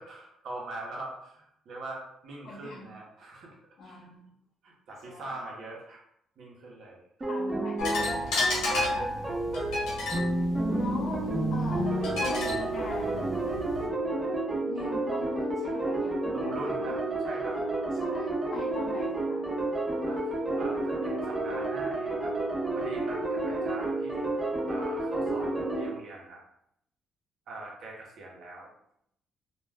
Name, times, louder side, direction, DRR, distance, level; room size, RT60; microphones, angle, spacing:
voice 1, 0.0-3.6 3.8-4.1 4.6-6.0 6.4-7.0 16.3-17.6 20.0-22.3 22.7-24.3 24.7-26.4 27.5-28.7, right 2 dB, 70° right, -2 dB, 0.7 m, -42 dB
voice 2, 2.4-2.9 3.8-4.3 5.0-5.3 7.3-8.5 10.8-11.2 11.5-13.4 14.6-17.0 18.0-19.4, left 3 dB, 60° left, -5 dB, 0.5 m, -41 dB
sound 1, 7.2-25.9, right 2 dB, 20° right, 0.7 m, -30 dB
sound 2, 7.8-13.9, left 2 dB, 90° left, 0.9 m, -32 dB
sound 3, 10.5-14.5, equal, ahead, 1.1 m, -48 dB
2.2 x 2.1 x 3.3 m, 0.74 s
cardioid pair, 90°, 0 cm